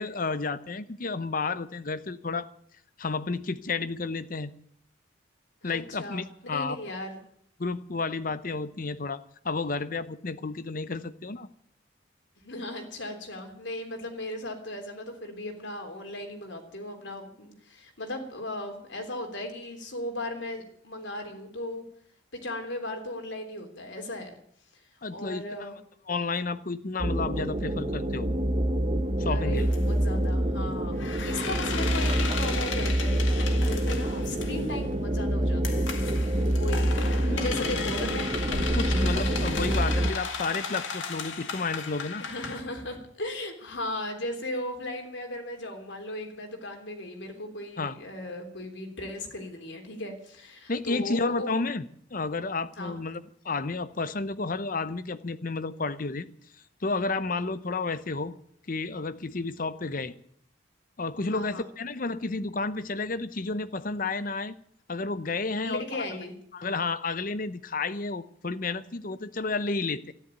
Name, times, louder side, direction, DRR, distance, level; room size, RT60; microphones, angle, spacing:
voice 1, 0.0-2.5 3.0-4.5 5.6-6.8 7.6-11.5 25.0-25.7 26.1-28.3 29.2-29.7 37.3-37.7 38.5-42.2 47.8-48.0 50.7-51.9 52.1-56.3 56.8-58.3 58.7-60.1 61.0-64.5 64.9-66.0 66.5-70.1, left 3 dB, 45° left, 0.8 m, -31 dB
voice 2, 5.6-7.2 12.4-21.8 22.3-24.3 24.7-24.8 25.1-25.8 29.3-36.2 36.5-37.0 37.3-38.3 42.2-51.5 52.8-53.0 61.3-61.7 65.6-66.3, left 1 dB, 70° left, 3.4 m, -37 dB
sound 1, 27.0-40.1, right 1 dB, 35° right, 0.9 m, -27 dB
sound 2, 29.6-29.8 31.0-34.7 35.6-42.6, left 5 dB, 85° left, 2.1 m, -35 dB
13.0 x 10.5 x 9.1 m
head